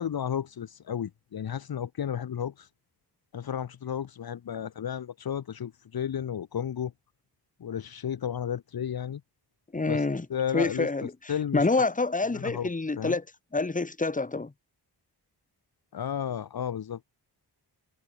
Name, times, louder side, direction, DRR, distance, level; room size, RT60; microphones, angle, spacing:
voice 1, 0.0-2.7 3.3-6.9 7.6-9.2 9.8-10.0 10.3-10.9 11.3-11.7 12.3-12.7 13.0-13.2 15.9-17.0, left 9 dB, 65° left, 1.4 m, -33 dB
voice 2, 9.7-10.3 10.5-11.1 11.5-13.2 13.5-14.5, left 3 dB, 20° left, 2.7 m, -27 dB
wide cardioid pair, 170°, 40 cm